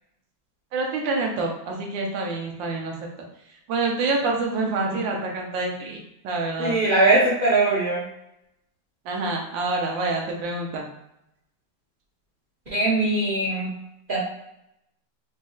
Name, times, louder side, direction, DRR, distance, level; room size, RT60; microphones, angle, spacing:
voice 1, 0.7-3.1 3.7-6.8 9.0-10.9, right 3 dB, 80° right, 1 dB, 1.5 m, -27 dB
voice 2, 6.6-8.0 12.7-13.7 14.1-14.2, right 2 dB, 60° right, -7 dB, 0.5 m, -21 dB
4.1 x 2.7 x 2.3 m, 0.80 s
omnidirectional pair, 2.1 m